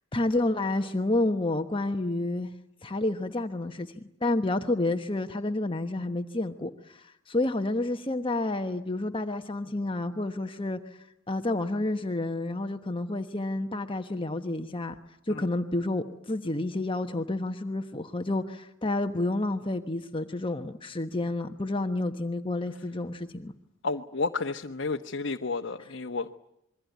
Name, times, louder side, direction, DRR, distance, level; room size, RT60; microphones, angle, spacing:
voice 1, 0.1-2.5 2.8-15.0 15.3-23.5, left 2 dB, 25° left, 6 dB, 1.2 m, -30 dB
voice 2, 23.8-26.4, left 3 dB, 60° left, 3 dB, 1.2 m, -31 dB
27.5 x 23.0 x 9.4 m, 0.79 s
head